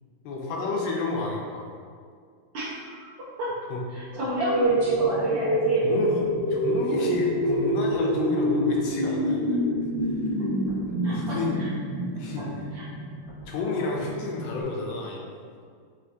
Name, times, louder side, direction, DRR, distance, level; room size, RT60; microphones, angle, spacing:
voice 1, 0.2-1.8 3.7-3.8 5.8-9.6 10.0-10.3 11.0-11.6 12.2-12.7 13.5-15.2, left 3 dB, 75° left, -1 dB, 1.3 m, -31 dB
voice 2, 3.9-5.9 10.4-10.5 11.0-11.7 12.7-12.8, right 1 dB, 70° right, -12 dB, 1.5 m, -29 dB
sound 1, 4.1-13.0, equal, 45° right, 1.4 m, -26 dB
sound 2, 4.6-14.6, right 1 dB, 55° left, 1.1 m, -42 dB
5.7 x 2.6 x 2.7 m, 2.1 s
omnidirectional pair, 2.2 m